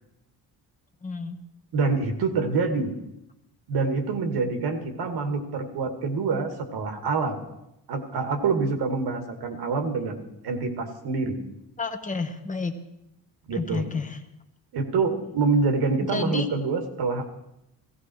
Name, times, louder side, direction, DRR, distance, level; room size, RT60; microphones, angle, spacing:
voice 1, 1.0-1.4 11.8-12.7 13.5-14.2 16.0-16.5, left 4 dB, 20° left, 6 dB, 1.0 m, -30 dB
voice 2, 1.7-2.9 3.7-7.4 7.9-10.2 10.4-11.4 13.5-13.8 14.7-17.2, right 4 dB, 80° right, 6 dB, 2.4 m, -26 dB
17.0 x 16.5 x 4.7 m, 0.85 s
cardioid pair, 175°, 39 cm